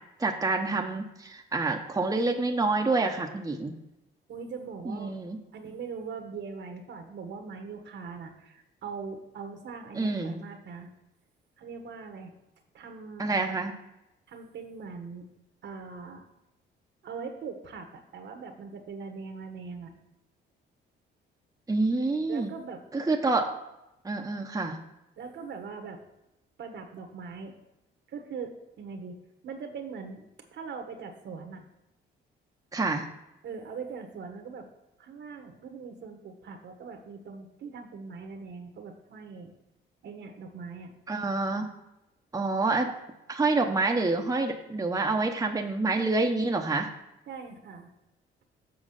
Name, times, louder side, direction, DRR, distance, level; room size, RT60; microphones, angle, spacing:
voice 1, 0.2-3.8 4.8-5.4 9.9-10.4 13.2-13.7 21.7-22.5 22.9-23.4 24.0-24.8 32.7-33.1 41.1-41.7 42.3-42.9 43.3-46.9, right 3 dB, 15° right, 2 dB, 1.0 m, -27 dB
voice 2, 4.3-5.2 5.5-10.9 11.6-12.3 12.7-13.3 14.3-15.3 15.6-16.2 17.0-20.0 22.3-22.8 25.2-26.0 26.6-27.5 28.1-29.2 29.4-31.6 33.4-34.7 35.0-39.5 40.0-40.9 47.3-47.9, right 5 dB, 65° right, 5 dB, 1.4 m, -41 dB
7.5 x 4.8 x 6.6 m, 0.91 s
cardioid pair, 90°, 20 cm